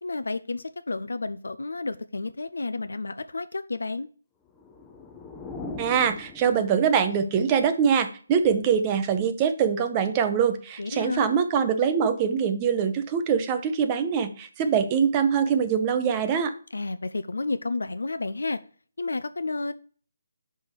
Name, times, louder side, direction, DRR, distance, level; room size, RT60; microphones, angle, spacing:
voice 1, 0.0-4.1 10.8-11.4 16.7-18.6 19.0-19.7, left 3 dB, 70° left, 12 dB, 0.5 m, -31 dB
sound 1, 4.5-7.1, left 3 dB, 10° left, 0.7 m, -40 dB
voice 2, 5.8-16.5, right 7 dB, 20° right, 8 dB, 0.8 m, -23 dB
5.5 x 4.9 x 6.3 m, 0.42 s
figure-of-eight pair, 150°, 0 cm